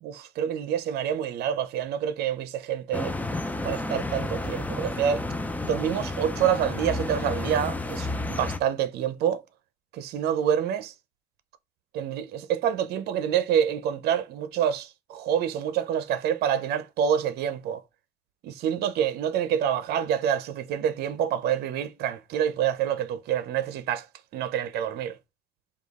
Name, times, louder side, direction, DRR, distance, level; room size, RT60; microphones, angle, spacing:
voice 1, 0.0-3.2 3.6-5.3 5.6-9.4 9.9-10.9 11.9-17.8 18.4-24.1 24.3-25.2, right 9 dB, 70° right, 0.6 m, -27 dB
sound 1, 2.9-8.6, left 2 dB, 10° left, 0.5 m, -31 dB
4.9 x 2.4 x 3.6 m
cardioid pair, 110°, 17 cm